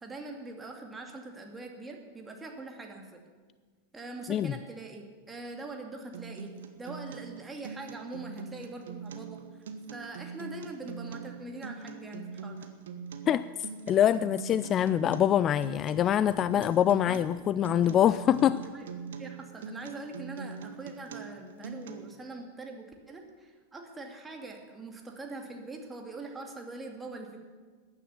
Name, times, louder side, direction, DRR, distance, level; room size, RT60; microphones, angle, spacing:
voice 1, 0.0-3.2 3.9-6.5 6.8-9.6 9.9-12.7 16.5-16.8 17.0-17.2 18.5-27.4, right 2 dB, 10° right, 2 dB, 2.3 m, -43 dB
Acoustic guitar, 6.1-22.1, right 5 dB, 60° right, 1.3 m, -42 dB
voice 2, 13.9-18.6, left 10 dB, 30° left, 16 dB, 0.3 m, -24 dB
15.5 x 10.5 x 7.1 m, 1.5 s
figure-of-eight pair, 90°, 0 cm